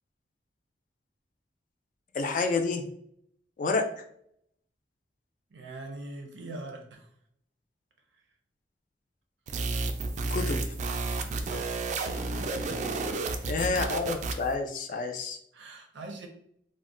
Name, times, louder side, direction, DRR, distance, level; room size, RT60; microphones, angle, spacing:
voice 1, 2.1-2.8 3.6-3.8 10.3-10.6 13.4-15.4, left 4 dB, 50° left, 5 dB, 0.4 m, -29 dB
voice 2, 5.5-7.1 11.2-11.7 15.5-16.3, right 2 dB, 90° right, 3 dB, 0.6 m, -43 dB
sound 1, 9.5-14.5, right 3 dB, 40° right, 0.3 m, -31 dB
2.4 x 2.1 x 3.7 m, 0.69 s
head